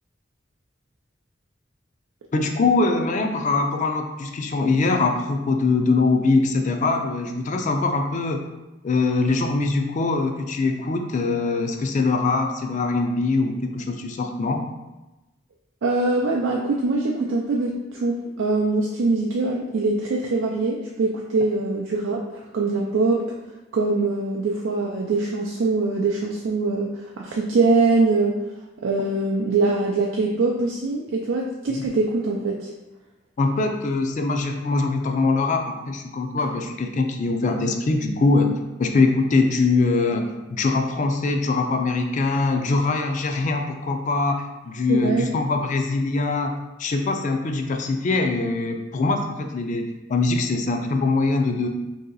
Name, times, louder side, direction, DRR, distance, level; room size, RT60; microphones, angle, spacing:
voice 1, 2.3-8.4 8.8-14.6 31.7-31.9 33.4-51.7, left 3 dB, 40° left, 4 dB, 0.4 m, -23 dB
voice 2, 15.8-23.2 23.7-28.3 28.8-32.7 44.9-45.3, right 3 dB, 85° right, -1 dB, 0.4 m, -23 dB
2.9 x 2.7 x 3.8 m, 1.0 s
head